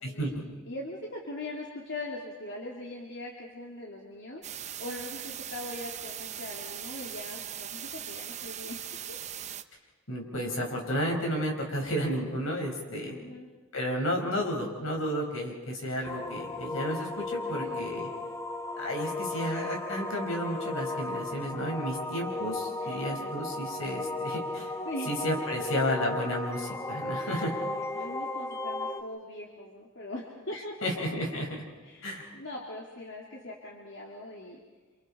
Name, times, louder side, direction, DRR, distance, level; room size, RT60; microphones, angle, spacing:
voice 1, 0.7-4.4 4.8-8.8 9.1-9.2 13.0-13.5 17.6-18.0 22.8-23.0 24.8-25.1 27.7-30.8 31.8-34.6, left 1 dB, 60° left, -2 dB, 2.8 m, -41 dB
sound 1, 4.4-9.6, right 10 dB, 35° right, 0.7 m, -40 dB
voice 2, 10.1-13.2 13.7-18.1 18.8-24.7 25.1-27.5 30.8-31.6 32.0-32.2, equal, 80° left, 0 dB, 5.5 m, -32 dB
sound 2, 16.0-29.0, left 2 dB, 15° left, 1.0 m, -35 dB
30.0 x 27.0 x 4.4 m, 1.2 s
head